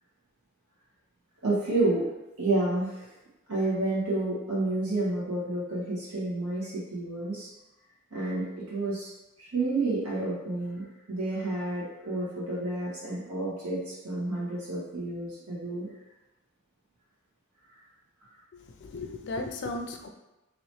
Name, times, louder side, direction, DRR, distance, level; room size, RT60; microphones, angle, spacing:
voice 1, 1.4-2.1 2.4-3.1 3.5-7.5 8.1-9.1 9.4-15.9, right 2 dB, 85° right, -7 dB, 1.5 m, -30 dB
voice 2, 18.5-20.1, left 2 dB, 50° left, 5 dB, 0.3 m, -36 dB
3.0 x 2.9 x 3.1 m, 0.99 s
head